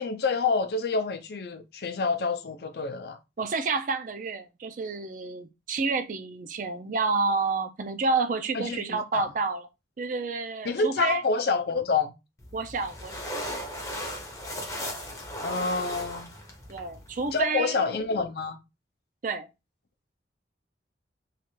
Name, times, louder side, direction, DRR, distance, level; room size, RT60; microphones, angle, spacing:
voice 1, 0.0-3.2 8.5-9.3 10.6-12.1 15.4-16.4 17.3-18.6, left 4 dB, 55° left, 0.5 m, -28 dB
voice 2, 3.4-9.7 10.0-11.2 12.5-13.4 16.7-18.0 19.2-19.5, right 4 dB, 45° right, 0.4 m, -29 dB
sound 1, 12.4-17.4, equal, 15° left, 0.6 m, -37 dB
3.2 x 2.4 x 3.0 m
head